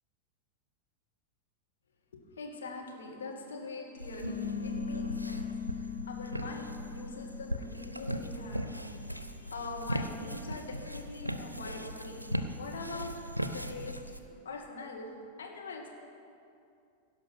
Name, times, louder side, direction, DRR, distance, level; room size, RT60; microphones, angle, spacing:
voice 1, 2.1-12.2 12.6-13.1 13.5-14.0 14.4-15.1 15.4-15.9, left 3 dB, 65° left, 0 dB, 1.7 m, -43 dB
sound 1, 4.0-14.2, equal, 90° right, 0.5 m, -39 dB
sound 2, 4.2-9.2, left 6 dB, 85° left, 1.0 m, -39 dB
16.5 x 5.8 x 5.9 m, 2.5 s
figure-of-eight pair, 90°, 0 cm